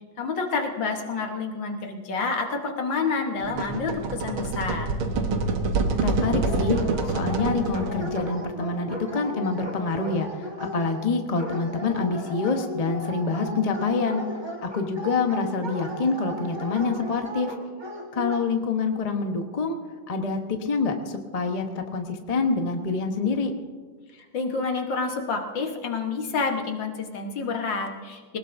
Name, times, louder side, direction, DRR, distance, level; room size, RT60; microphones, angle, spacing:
voice 1, 0.2-4.9 24.1-28.4, left 4 dB, 65° left, 3 dB, 1.9 m, -29 dB
sound 1, 3.4-8.3, right 3 dB, 85° right, 2.0 m, -26 dB
voice 2, 6.0-14.2 14.6-17.5 18.1-19.8 20.1-23.5, left 4 dB, 30° left, 4 dB, 0.7 m, -26 dB
Dog, 6.2-18.4, equal, 15° right, 1.4 m, -36 dB
20.5 x 19.0 x 2.7 m, 1.5 s
omnidirectional pair, 2.3 m